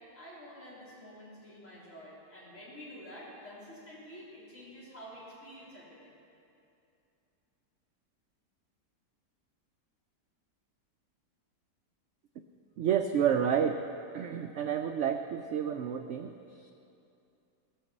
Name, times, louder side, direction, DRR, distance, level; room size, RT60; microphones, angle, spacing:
voice 1, 0.2-6.2, equal, 45° left, -9 dB, 4.5 m, -49 dB
voice 2, 12.8-13.8 14.1-16.3, right 8 dB, 75° right, 6 dB, 0.6 m, -29 dB
19.0 x 6.4 x 7.2 m, 2.7 s
omnidirectional pair, 1.8 m